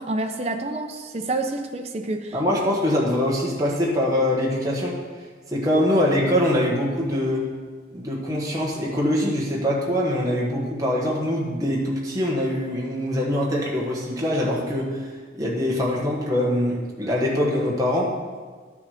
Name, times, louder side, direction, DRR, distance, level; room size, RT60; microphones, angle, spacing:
voice 1, 0.0-2.4 5.7-5.8, right 2 dB, 35° right, 4 dB, 0.8 m, -28 dB
voice 2, 2.3-5.0 5.5-7.5 7.9-15.1 15.3-18.1, left 1 dB, 20° right, -4 dB, 1.4 m, -23 dB
11.5 x 7.1 x 5.0 m, 1.5 s
head